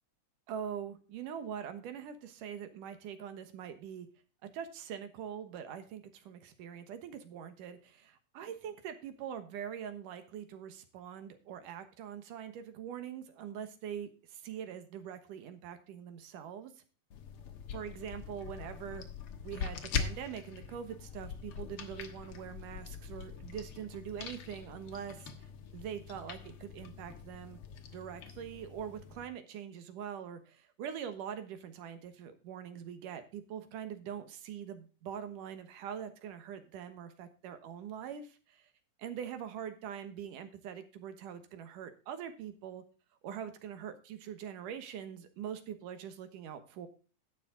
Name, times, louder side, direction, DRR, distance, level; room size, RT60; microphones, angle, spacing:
voice 1, 0.5-4.1 4.5-16.7 17.7-19.1 19.4-27.6 27.9-38.7 39.0-42.8 43.2-46.9, right 8 dB, 70° right, 9 dB, 2.6 m, -43 dB
sound 1, 17.1-29.3, left 6 dB, 60° left, 1.5 m, -43 dB
11.5 x 8.3 x 3.7 m, 0.36 s
omnidirectional pair, 4.2 m